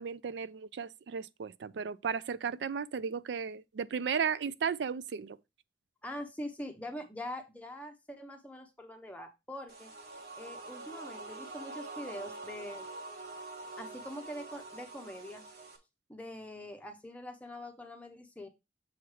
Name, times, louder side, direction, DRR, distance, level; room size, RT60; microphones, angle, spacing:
voice 1, 0.0-5.4, right 6 dB, 75° right, 0.4 m, -35 dB
voice 2, 6.0-9.9 10.4-12.9 13.8-15.4 16.1-18.5, left 1 dB, 10° left, 0.6 m, -43 dB
sound 1, 9.7-15.8, right 3 dB, 60° right, 1.3 m, -45 dB
7.1 x 3.2 x 4.8 m
head